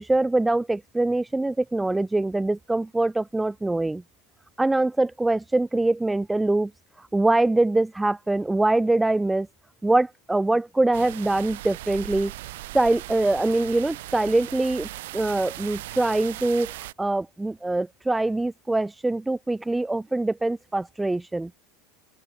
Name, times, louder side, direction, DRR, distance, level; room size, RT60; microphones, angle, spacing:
voice 1, 0.0-4.0 4.6-6.7 7.1-9.5 9.8-12.3 12.7-16.7 17.0-21.5, right 2 dB, 10° right, 0.6 m, -23 dB
sound 1, 10.9-16.9, right 17 dB, 70° right, 2.7 m, -38 dB
open air
hypercardioid pair, 80°, 0 cm